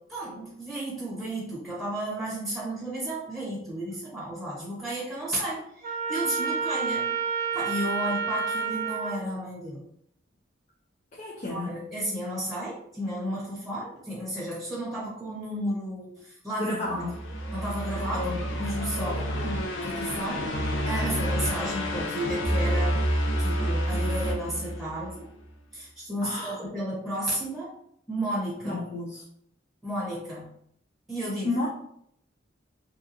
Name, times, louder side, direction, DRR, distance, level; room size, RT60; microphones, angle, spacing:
voice 1, 0.1-7.1 7.5-9.8 11.5-16.7 17.5-18.3 18.6-23.0 23.4-25.3 25.7-27.7 28.1-28.8 29.8-30.5 31.1-31.5, right 1 dB, ahead, -6 dB, 0.9 m, -33 dB
Trumpet, 5.8-9.2, right 5 dB, 40° right, 0.7 m, -29 dB
voice 2, 11.1-11.8 16.6-17.2 18.0-18.6 19.0-19.5 26.2-26.6 28.6-29.2 31.4-31.7, left 2 dB, 35° left, -3 dB, 0.5 m, -32 dB
sound 1, 16.9-25.2, equal, 85° left, 0.7 m, -29 dB
3.4 x 2.8 x 2.5 m, 0.70 s
head